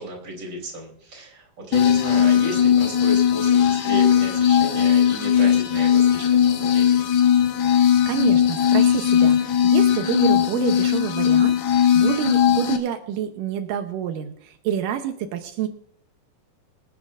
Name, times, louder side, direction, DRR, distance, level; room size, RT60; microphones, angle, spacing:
voice 1, 0.0-7.1, right 1 dB, 30° right, -1 dB, 4.0 m, -33 dB
sound 1, 1.7-12.8, left 9 dB, 75° left, 1.9 m, -18 dB
voice 2, 8.1-15.7, right 10 dB, 85° right, 6 dB, 1.9 m, -27 dB
25.5 x 8.7 x 2.5 m, 0.63 s
omnidirectional pair, 4.9 m